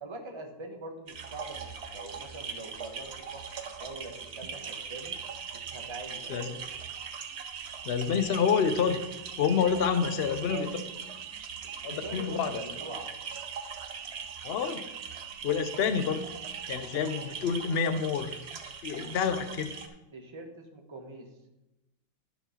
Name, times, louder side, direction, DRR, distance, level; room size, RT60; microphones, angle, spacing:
voice 1, 0.0-3.4 3.7-5.2 5.5-6.8 10.0-10.8 11.6-13.1 19.4-19.5 20.1-21.3, right 2 dB, 20° right, 3 dB, 0.9 m, -43 dB
sound 1, 1.1-19.9, right 5 dB, 50° right, 0.8 m, -42 dB
sound 2, 4.4-17.4, right 10 dB, 70° right, 1.0 m, -45 dB
voice 2, 7.8-9.0 9.4-10.7 11.8-12.5 14.4-14.9 15.4-16.2 16.7-18.4 18.8-19.8, left 6 dB, 60° left, 9 dB, 0.6 m, -28 dB
12.0 x 4.7 x 5.7 m, 0.96 s
omnidirectional pair, 1.9 m